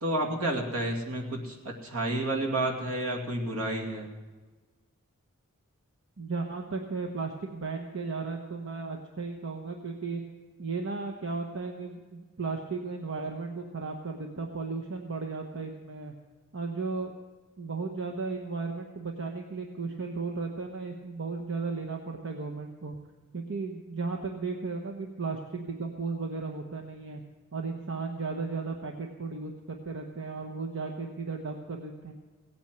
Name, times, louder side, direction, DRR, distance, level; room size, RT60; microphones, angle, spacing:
voice 1, 0.0-4.1, right 1 dB, 80° right, 1 dB, 2.5 m, -30 dB
voice 2, 6.2-10.2 10.6-16.1 16.5-17.1 17.6-23.0 23.3-27.2 27.5-32.1, right 4 dB, 60° right, 2 dB, 1.1 m, -35 dB
17.5 x 8.8 x 7.7 m, 1.3 s
head